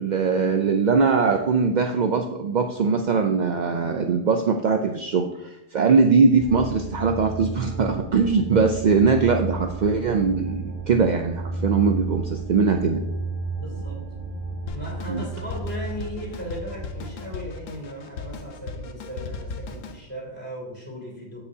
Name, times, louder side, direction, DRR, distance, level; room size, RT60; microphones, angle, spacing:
voice 1, 0.0-13.0 15.1-15.2, right 5 dB, 60° right, 4 dB, 0.4 m, -21 dB
sound 1, 6.4-18.3, right 3 dB, 25° right, 1.2 m, -33 dB
voice 2, 13.6-14.0 14.7-21.4, equal, 10° left, -3 dB, 2.7 m, -37 dB
Drum kit, 14.7-20.0, left 4 dB, 75° left, 1.2 m, -37 dB
14.5 x 5.0 x 2.7 m, 0.86 s
omnidirectional pair, 1.4 m